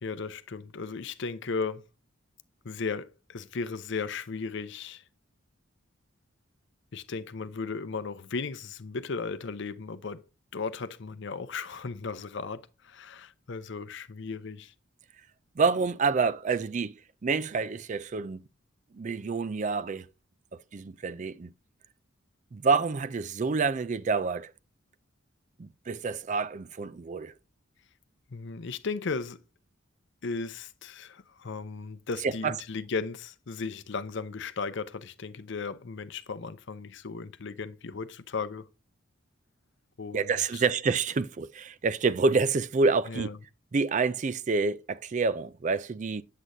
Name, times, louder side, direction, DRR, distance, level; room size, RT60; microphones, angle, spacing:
voice 1, 0.0-1.9 2.6-5.0 6.9-10.2 10.5-14.7 28.3-29.4 30.2-38.7 40.0-40.6 43.1-43.4, left 4 dB, 60° left, 0.6 m, -36 dB
voice 2, 15.6-16.9 17.2-18.4 18.9-20.1 20.7-21.5 22.5-24.5 25.6-27.3 32.2-32.6 40.1-43.3 43.7-46.2, right 4 dB, 35° right, 0.4 m, -28 dB
8.2 x 7.5 x 2.6 m
head